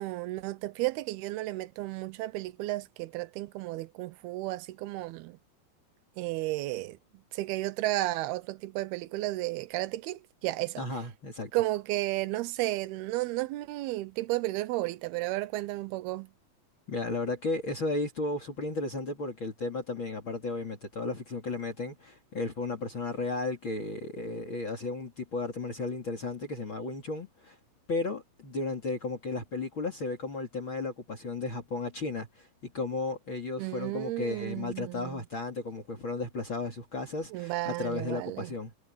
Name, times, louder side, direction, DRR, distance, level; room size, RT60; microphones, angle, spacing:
voice 1, 0.0-5.4 6.2-7.0 7.3-10.8 11.5-16.3 33.6-35.2 37.3-38.5, right 18 dB, 90° right, 2.7 m, -33 dB
voice 2, 10.8-11.5 16.9-27.6 27.9-38.7, left 3 dB, 35° left, 3.2 m, -34 dB
omnidirectional pair, 4.4 m